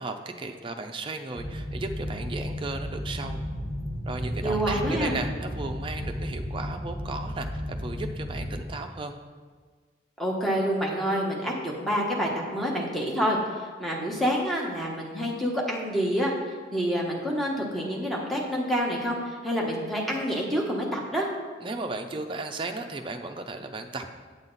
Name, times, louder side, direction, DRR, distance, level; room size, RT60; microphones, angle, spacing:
voice 1, 0.0-3.4 4.1-9.1 21.6-24.1, right 3 dB, 25° right, 5 dB, 0.5 m, -35 dB
sound 1, 1.3-8.6, equal, 80° left, 1.7 m, -33 dB
voice 2, 4.4-5.1 10.2-16.3 16.7-21.3, equal, ahead, -3 dB, 1.1 m, -27 dB
8.2 x 7.4 x 4.0 m, 1.5 s
head